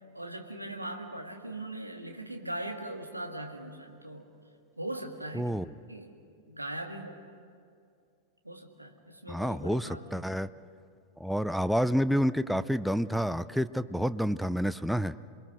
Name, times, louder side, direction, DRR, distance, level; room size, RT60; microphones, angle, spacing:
voice 1, 0.1-4.3 4.8-5.5 5.9-6.2 6.5-7.2 8.4-10.3, right 1 dB, 85° right, 4 dB, 1.9 m, -40 dB
voice 2, 5.3-5.7 9.3-10.5 11.2-15.1, equal, ahead, 14 dB, 0.5 m, -29 dB
27.5 x 21.5 x 6.2 m, 2.4 s
figure-of-eight pair, 90°, 0 cm